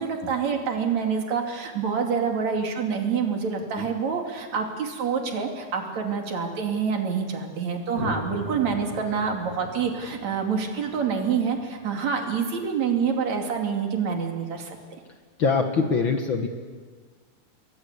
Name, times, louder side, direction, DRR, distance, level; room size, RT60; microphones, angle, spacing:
voice 1, 0.0-14.8, right 6 dB, 65° right, 3 dB, 4.0 m, -27 dB
sound 1, 8.0-12.6, left 2 dB, 30° left, 2.4 m, -39 dB
voice 2, 15.4-16.5, left 5 dB, 45° left, 5 dB, 2.0 m, -23 dB
29.0 x 21.5 x 8.4 m, 1.5 s
omnidirectional pair, 3.4 m